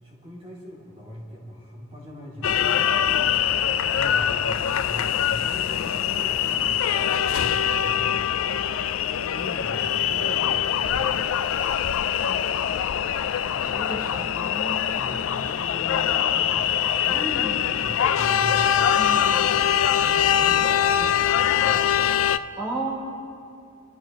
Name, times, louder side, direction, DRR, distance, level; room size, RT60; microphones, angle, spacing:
voice 1, 0.0-2.9 3.9-4.4 4.7-8.6 9.3-11.2 13.4-14.3 14.9-18.7 19.1-19.6 20.0-21.8, equal, 30° right, -6 dB, 2.5 m, -40 dB
sound 1, 2.4-22.4, left 9 dB, 80° left, 0.4 m, -23 dB
voice 2, 13.6-14.8 17.1-17.7 18.9-19.5 22.6-23.0, right 1 dB, 10° right, -7 dB, 3.8 m, -33 dB
23.0 x 12.5 x 2.9 m, 2.6 s
head